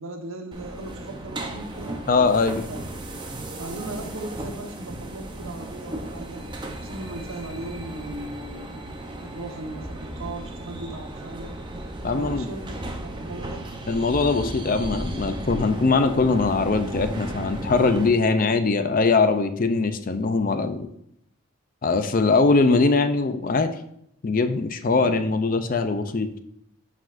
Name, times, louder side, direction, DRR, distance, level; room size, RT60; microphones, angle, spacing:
voice 1, 0.0-2.1 2.7-2.8 3.4-6.4 6.8-11.5 12.1-13.7 24.9-25.3, right 2 dB, 75° right, 3 dB, 1.2 m, -38 dB
sound 1, 0.5-18.1, right 1 dB, 20° right, 0.7 m, -35 dB
voice 2, 2.1-2.7 12.0-12.5 13.9-20.9 21.8-23.7 24.2-26.4, left 3 dB, 40° left, 9 dB, 0.5 m, -21 dB
11.5 x 5.0 x 2.6 m, 0.75 s
head